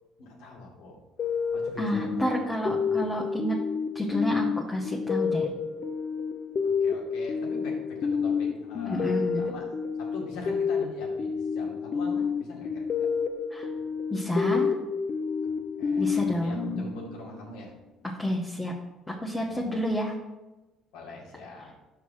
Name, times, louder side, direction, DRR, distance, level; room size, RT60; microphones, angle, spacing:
voice 1, 0.2-1.0 1.5-2.3 2.6-3.0 6.6-13.1 15.4-17.7 19.3-19.7 20.9-21.7, left 2 dB, 85° left, -3 dB, 2.1 m, -43 dB
sound 1, 1.2-17.5, left 6 dB, 45° left, 0.6 m, -30 dB
voice 2, 1.8-3.6 3.9-5.5 8.9-9.5 13.5-13.7 14.1-14.7 16.0-16.9 18.2-18.7 19.1-20.1, equal, 10° left, -2 dB, 1.0 m, -29 dB
6.0 x 4.7 x 5.7 m, 1.1 s
cardioid pair, 100°, 0 cm